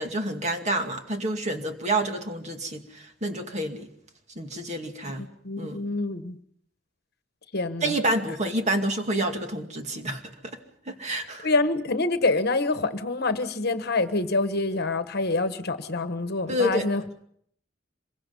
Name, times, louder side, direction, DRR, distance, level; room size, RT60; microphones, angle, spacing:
voice 1, 0.0-3.9 4.4-5.2 5.6-5.8 7.8-10.6 10.9-11.5 16.5-16.9, right 1 dB, 35° right, 2.3 m, -28 dB
voice 2, 5.2-6.4 7.5-7.9 11.4-17.0, left 3 dB, 55° left, 1.3 m, -26 dB
26.5 x 23.0 x 5.5 m
head